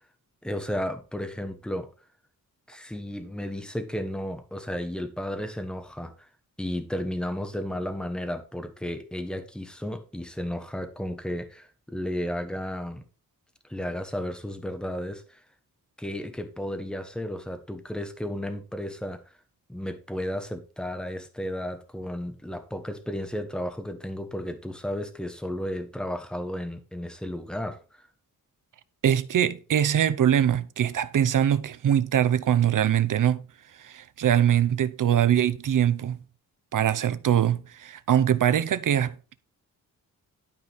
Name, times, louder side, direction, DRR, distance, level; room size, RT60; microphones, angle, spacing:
voice 1, 0.4-1.9 2.7-6.1 6.6-13.0 13.7-15.4 16.0-19.2 19.7-28.1, left 1 dB, ahead, 1.3 m, -33 dB
voice 2, 29.0-33.4 33.8-36.2 36.7-39.1, right 10 dB, 60° right, 0.8 m, -23 dB
12.5 x 5.2 x 4.2 m
wide cardioid pair, 140°, 35 cm